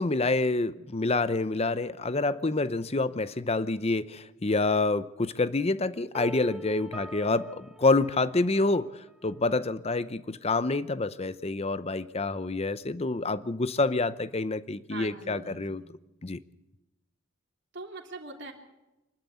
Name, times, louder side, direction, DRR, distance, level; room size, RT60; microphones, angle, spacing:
voice 1, 0.0-8.9 9.2-15.8 16.2-16.4, left 3 dB, 30° left, 15 dB, 0.7 m, -27 dB
sound 1, 6.1-9.1, right 1 dB, 5° right, 0.9 m, -43 dB
voice 2, 14.9-15.8 17.7-18.5, right 3 dB, 55° right, 1 dB, 3.3 m, -42 dB
26.5 x 12.0 x 8.4 m, 0.98 s
head